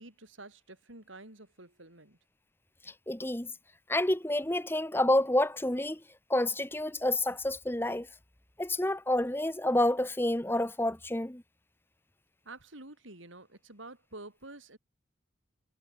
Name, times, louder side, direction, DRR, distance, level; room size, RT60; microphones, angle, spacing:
voice 1, 0.0-2.2 12.5-14.8, right 2 dB, 85° right, 7.0 m, -49 dB
voice 2, 2.9-3.5 3.9-6.0 6.3-8.1 8.6-11.4, left 1 dB, 10° left, 1.1 m, -29 dB
head